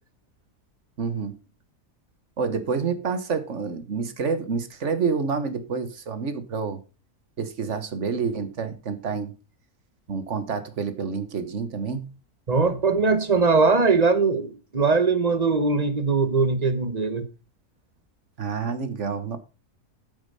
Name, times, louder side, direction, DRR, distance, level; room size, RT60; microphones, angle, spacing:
voice 1, 1.0-1.4 2.4-6.8 7.4-9.3 10.1-12.1 18.4-19.4, right 5 dB, 50° right, 1.5 m, -28 dB
voice 2, 12.5-17.3, right 4 dB, 30° right, 1.0 m, -21 dB
8.8 x 7.3 x 5.5 m
omnidirectional pair, 1.6 m